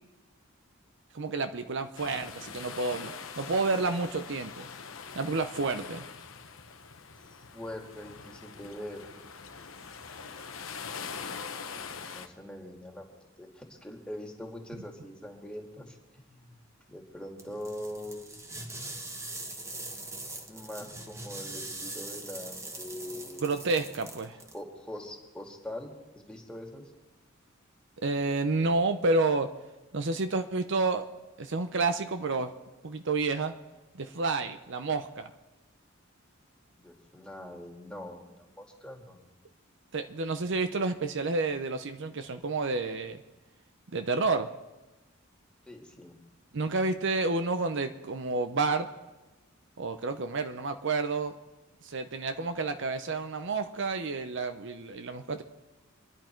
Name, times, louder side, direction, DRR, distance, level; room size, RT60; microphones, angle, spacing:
voice 1, 1.1-4.7 5.1-6.1 23.4-24.4 28.0-29.5 29.9-31.1 31.4-32.5 32.8-33.6 33.9-35.3 39.9-43.2 43.9-44.5 46.5-48.9 49.8-51.3 51.8-55.4, right 3 dB, 65° right, 8 dB, 0.8 m, -30 dB
sound 1, 2.0-12.3, left 6 dB, 75° left, 1.1 m, -43 dB
voice 2, 7.5-9.1 11.5-16.5 16.9-18.3 20.5-23.5 24.5-26.8 36.8-39.4 45.7-46.2, left 1 dB, 5° left, 0 dB, 2.2 m, -43 dB
sound 2, 17.4-24.6, right 2 dB, 15° right, 1.3 m, -42 dB
26.0 x 11.0 x 4.5 m, 1.1 s
head